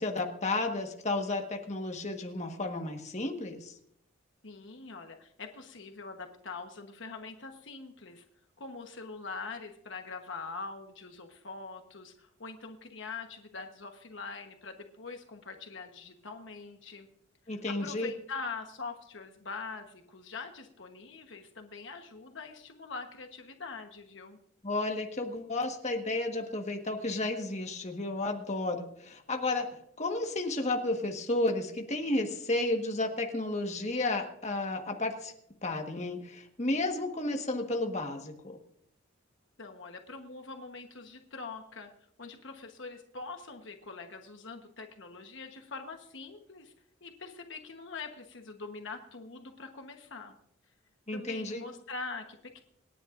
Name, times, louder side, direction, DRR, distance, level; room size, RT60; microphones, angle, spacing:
voice 1, 0.0-3.7 17.5-18.1 24.6-29.7 30.0-35.3 35.6-38.6 51.1-51.6, left 2 dB, 35° left, 3 dB, 1.4 m, -32 dB
voice 2, 4.4-8.2 8.6-17.1 17.5-24.4 39.6-41.9 42.2-46.7 47.0-50.4 51.1-52.6, left 4 dB, 65° left, 4 dB, 1.2 m, -43 dB
27.0 x 10.0 x 2.6 m, 0.71 s
head